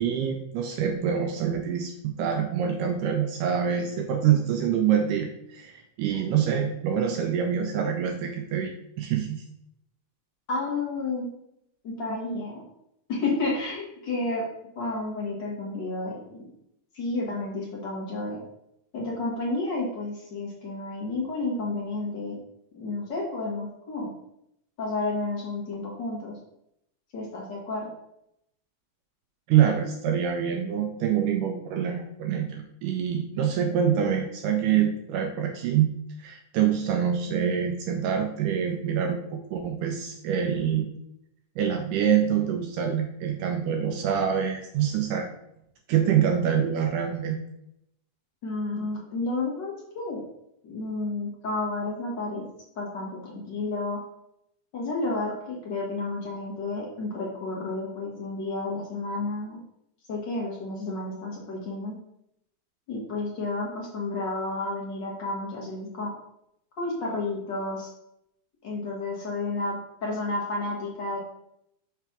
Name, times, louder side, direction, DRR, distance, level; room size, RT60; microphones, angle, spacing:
voice 1, 0.0-9.4 29.5-35.9 36.2-40.9 41.6-45.3 45.9-47.4, right 8 dB, 80° right, 4 dB, 1.9 m, -25 dB
voice 2, 10.5-11.3 11.8-12.6 13.1-14.4 14.7-16.4 16.9-18.4 18.9-22.4 22.7-24.1 24.8-26.3 27.1-27.9 48.4-50.2 50.6-52.4 52.7-54.0 54.7-59.6 60.1-61.9 62.9-66.1 66.8-67.9 68.6-71.2, left 2 dB, 50° left, -3 dB, 1.4 m, -31 dB
5.9 x 3.4 x 5.8 m, 0.79 s
omnidirectional pair, 4.1 m